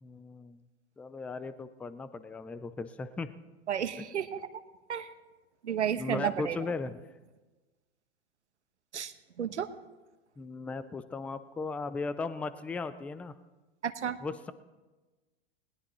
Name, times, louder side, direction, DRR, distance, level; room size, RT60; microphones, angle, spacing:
voice 1, 0.0-0.6 1.0-3.3 4.0-4.1 6.0-7.0 10.4-13.3 14.2-14.5, left 4 dB, 5° left, 14 dB, 0.4 m, -37 dB
voice 2, 3.7-4.6 4.9-5.1 5.6-6.6 8.9-9.1 9.4-9.7 13.8-14.2, right 9 dB, 90° right, 11 dB, 1.2 m, -32 dB
20.5 x 19.0 x 3.1 m, 1.2 s
hypercardioid pair, 115°, 34 cm